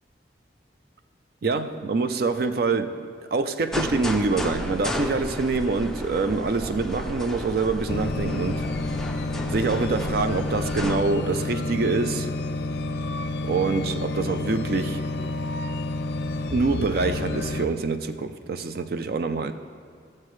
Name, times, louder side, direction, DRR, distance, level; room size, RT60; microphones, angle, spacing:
voice 1, 1.4-8.7 9.5-12.3 13.4-15.1 16.5-19.5, right 3 dB, 55° right, 0.4 m, -25 dB
sound 1, 3.7-11.0, left 1 dB, 5° left, 0.4 m, -33 dB
sound 2, 7.9-17.7, left 2 dB, 60° left, 0.4 m, -29 dB
15.0 x 7.5 x 3.2 m
head